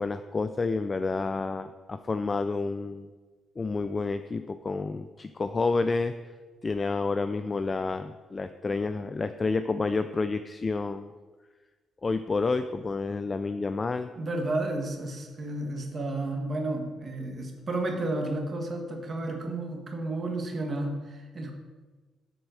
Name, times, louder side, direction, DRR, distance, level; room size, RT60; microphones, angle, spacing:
voice 1, 0.0-3.1 3.6-6.1 6.6-11.1 12.0-14.1, left 3 dB, 30° left, 10 dB, 0.3 m, -29 dB
voice 2, 14.2-21.5, right 2 dB, 40° right, 2 dB, 1.5 m, -32 dB
8.0 x 4.2 x 6.2 m, 1.3 s
cardioid pair, 90°, 0 cm